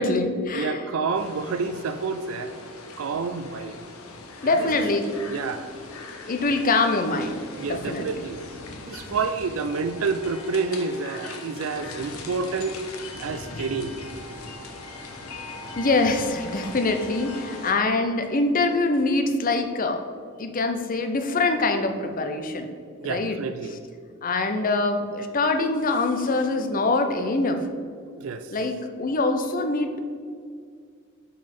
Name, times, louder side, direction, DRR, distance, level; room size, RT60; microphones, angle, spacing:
voice 1, 0.0-0.8 4.4-5.1 6.3-7.4 7.7-8.1 15.8-20.0 20.4-22.7 23.0-23.4 24.2-27.7 28.5-30.0, left 3 dB, 40° left, 6 dB, 0.6 m, -24 dB
voice 2, 0.5-2.5 3.0-3.8 4.4-5.7 7.6-8.5 8.8-12.8 13.2-14.0 23.0-23.8 28.1-28.5, right 4 dB, 70° right, 9 dB, 0.4 m, -29 dB
sound 1, 1.1-17.7, left 3 dB, 85° left, 0.9 m, -40 dB
5.6 x 5.3 x 5.3 m, 2.1 s
head